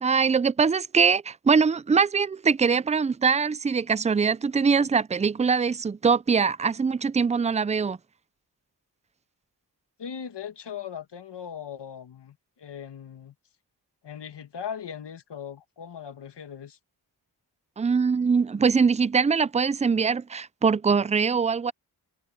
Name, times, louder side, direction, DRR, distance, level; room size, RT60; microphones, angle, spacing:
voice 1, 0.0-8.0 17.8-21.7, right 5 dB, 20° right, 0.4 m, -22 dB
voice 2, 10.0-13.3 14.0-16.8, left 8 dB, 80° left, 1.9 m, -39 dB
wide cardioid pair, 90°, 41 cm